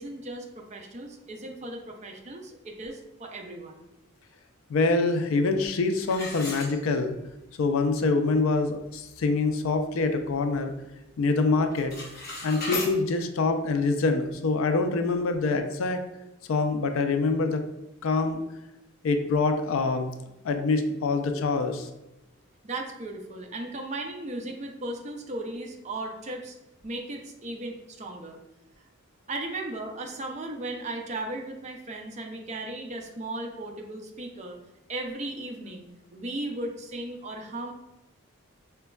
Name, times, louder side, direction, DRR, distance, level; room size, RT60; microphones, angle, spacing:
voice 1, 0.0-3.9 22.6-26.5 26.8-28.4 29.3-34.6 34.9-37.7, right 2 dB, 35° right, 2 dB, 0.4 m, -36 dB
voice 2, 4.7-7.2 7.6-10.7 11.2-11.9 12.4-16.0 16.5-17.6 18.0-18.4 19.0-20.1 20.4-21.9, left 3 dB, 75° left, 7 dB, 0.4 m, -25 dB
sound 1, 6.1-7.3 7.8-7.9 8.4-8.5 8.9-9.2 9.7-10.8 11.1-11.4 11.7-12.9, left 3 dB, 45° left, 0.8 m, -36 dB
5.0 x 2.2 x 2.2 m, 0.94 s
head